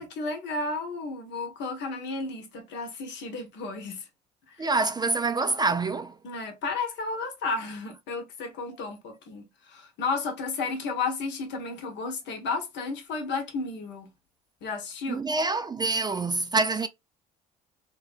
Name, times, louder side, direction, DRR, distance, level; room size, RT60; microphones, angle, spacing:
voice 1, 0.0-4.0 4.6-4.7 6.2-14.1 14.6-15.2, left 4 dB, 60° left, 0.9 m, -33 dB
voice 2, 4.6-6.2 15.1-16.9, right 3 dB, 20° right, 0.4 m, -26 dB
2.6 x 2.2 x 2.4 m
hypercardioid pair, 60°, 21 cm